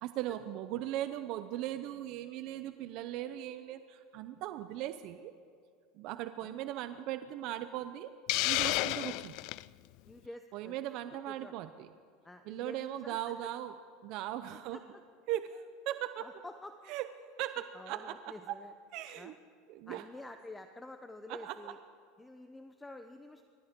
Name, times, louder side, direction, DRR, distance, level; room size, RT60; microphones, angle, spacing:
voice 1, 0.0-5.3 5.9-8.1 8.4-9.5 10.5-11.9 12.4-13.8 14.0-14.8 15.3-16.3 16.9-17.1 17.4-18.6 18.9-19.3 19.7-20.0 21.3-21.7, right 13 dB, 60° right, 11 dB, 0.7 m, -39 dB
Hiss, 8.3-9.6, left 20 dB, 60° left, 0.3 m, -31 dB
voice 2, 10.0-10.9 11.3-11.6 12.2-13.3 14.5-14.8 16.2-16.9 17.7-18.7 19.2-19.4 19.9-21.8 22.2-23.4, left 2 dB, 10° left, 8 dB, 0.8 m, -49 dB
28.5 x 13.5 x 3.7 m, 2.2 s
supercardioid pair, 115°, 0 cm